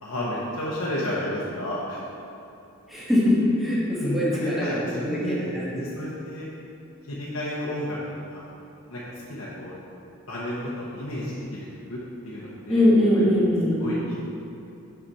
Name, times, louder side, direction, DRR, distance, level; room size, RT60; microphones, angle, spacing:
voice 1, 0.0-2.0 4.0-5.5 5.8-6.5 7.1-8.0 8.3-8.4 8.9-9.7 10.3-12.0 12.2-12.8 13.2-13.4 13.8-14.1, left 1 dB, 65° left, -8 dB, 1.0 m, -32 dB
voice 2, 2.9-5.9 12.7-13.9, left 1 dB, ahead, -7 dB, 1.4 m, -22 dB
6.1 x 5.8 x 4.2 m, 2.8 s
head